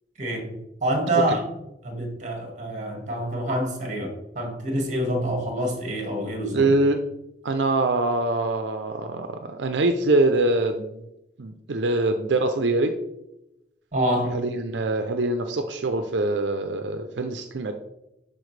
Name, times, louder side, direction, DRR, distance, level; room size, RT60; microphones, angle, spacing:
voice 1, 0.2-1.5 1.8-6.7 13.9-14.4, right 1 dB, 45° right, 2 dB, 1.8 m, -27 dB
voice 2, 6.5-7.0 7.4-11.0 11.4-12.9 14.3-17.7, right 2 dB, 90° right, 7 dB, 0.6 m, -24 dB
11.5 x 4.3 x 3.2 m, 0.90 s
head